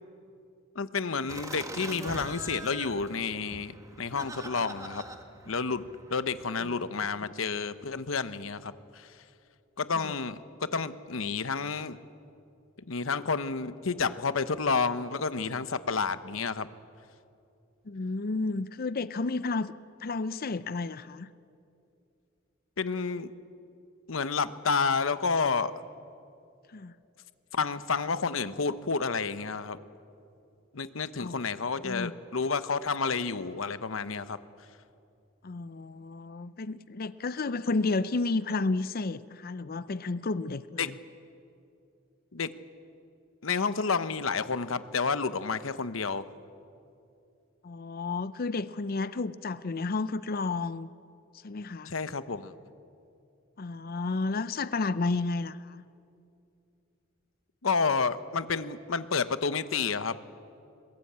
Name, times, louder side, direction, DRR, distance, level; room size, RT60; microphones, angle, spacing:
voice 1, 0.7-3.7 4.0-5.0 5.5-9.1 9.8-12.0 12.9-16.7 22.8-23.3 24.1-25.7 27.5-29.8 30.7-34.4 40.8-40.9 42.3-42.5 43.4-46.3 51.9-52.5 57.6-60.2, left 5 dB, 90° left, 13 dB, 1.0 m, -30 dB
Laughter, 1.3-6.5, right 1 dB, 15° right, 1.5 m, -43 dB
voice 2, 17.9-19.7 20.0-21.3 26.7-26.9 31.2-31.4 31.8-32.1 35.4-41.0 47.6-50.9 51.4-51.9 53.6-55.8, left 3 dB, 50° left, 15 dB, 0.6 m, -31 dB
22.5 x 21.0 x 8.7 m, 2.6 s
head